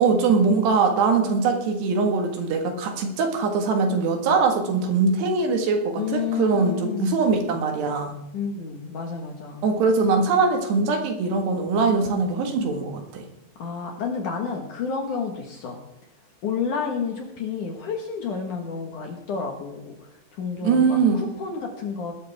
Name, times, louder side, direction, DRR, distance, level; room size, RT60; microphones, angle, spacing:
voice 1, 0.0-8.2 9.6-13.2 20.6-21.2, right 4 dB, 70° right, 4 dB, 3.7 m, -22 dB
voice 2, 6.0-7.1 8.3-9.6 13.6-15.8 16.4-22.1, left 5 dB, 60° left, 2 dB, 2.4 m, -30 dB
20.0 x 13.0 x 3.5 m, 0.85 s
omnidirectional pair, 5.1 m